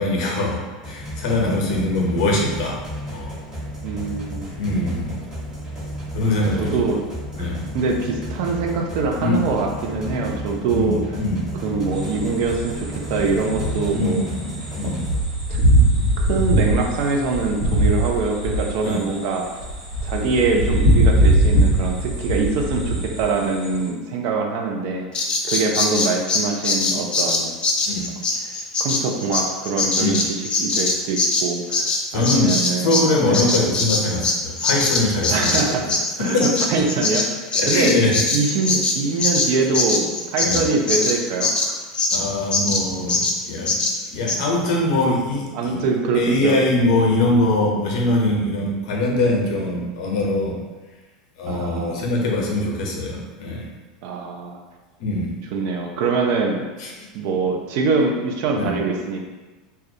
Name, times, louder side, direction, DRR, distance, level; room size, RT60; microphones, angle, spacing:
voice 1, 0.0-2.8 3.1-3.3 4.6-5.2 6.1-6.9 7.3-7.7 9.2-9.5 10.7-11.6 13.9-15.1 18.8-19.0 26.9-27.0 27.8-28.1 30.0-30.2 32.1-35.9 36.2-36.6 37.5-38.2 40.4-40.7 42.1-43.8 44.1-45.8 46.1-50.6 51.4-53.7 55.0-55.3 56.8-57.1 58.6-58.7, left 2 dB, 65° left, -1 dB, 0.6 m, -22 dB
sound 1, 0.8-15.2, equal, 25° right, 1.3 m, -33 dB
voice 2, 3.8-4.5 6.6-7.0 7.4-11.0 11.6-14.2 15.5-15.7 16.2-19.6 20.0-27.5 28.5-33.6 35.3-35.9 36.2-37.4 37.7-38.0 38.3-41.8 45.5-46.6 51.5-52.0 54.0-54.6 55.5-56.6 57.1-59.2, right 4 dB, 60° right, 2 dB, 0.4 m, -24 dB
sound 2, 11.9-23.9, right 1 dB, 80° right, 1.0 m, -21 dB
Bird vocalization bird call bird song, 25.1-33.1 33.3-42.2 42.5-42.8 43.1-43.4 43.7-43.9 44.3-44.4, left 3 dB, 25° left, 0.4 m, -22 dB
2.2 x 2.1 x 2.7 m, 1.3 s
hypercardioid pair, 95°, 4 cm